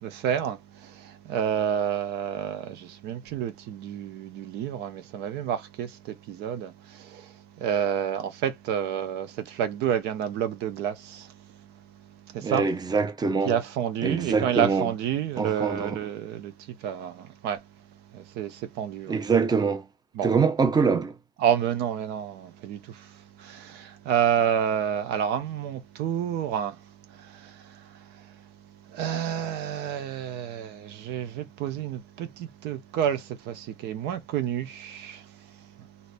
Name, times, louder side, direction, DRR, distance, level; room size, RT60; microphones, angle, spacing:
voice 1, 0.0-11.3 12.3-12.6 13.4-17.6 18.1-19.2 20.1-20.3 21.4-26.8 27.1-28.4 28.9-35.7, right 9 dB, 90° right, 0.7 m, -29 dB
voice 2, 12.4-13.6 14.0-14.9 15.4-16.0 19.1-19.8 20.2-21.1, right 5 dB, 25° right, 0.7 m, -24 dB
2.7 x 2.6 x 3.3 m
cardioid pair, 110°, 17 cm